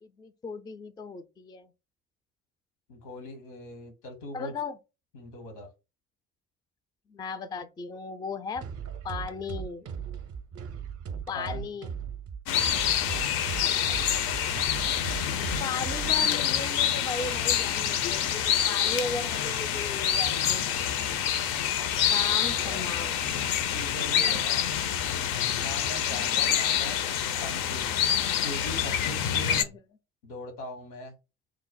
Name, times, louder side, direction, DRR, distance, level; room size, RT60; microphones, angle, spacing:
voice 1, 0.0-1.7 4.3-4.8 7.1-8.7 9.0-9.9 11.3-11.9 15.6-20.8 22.1-23.2 24.6-24.7 29.6-29.8, left 4 dB, 10° left, 0.3 m, -36 dB
voice 2, 2.9-4.5 5.1-5.7 11.3-11.7 22.4-22.8 23.7-24.6 25.5-27.0 27.4-27.9 28.4-29.7 30.2-31.1, left 1 dB, 75° left, 1.1 m, -40 dB
sound 1, 8.6-16.3, right 7 dB, 40° right, 0.5 m, -38 dB
sound 2, 12.5-29.6, left 9 dB, 60° left, 0.6 m, -27 dB
3.1 x 2.0 x 3.9 m
figure-of-eight pair, 45°, 39 cm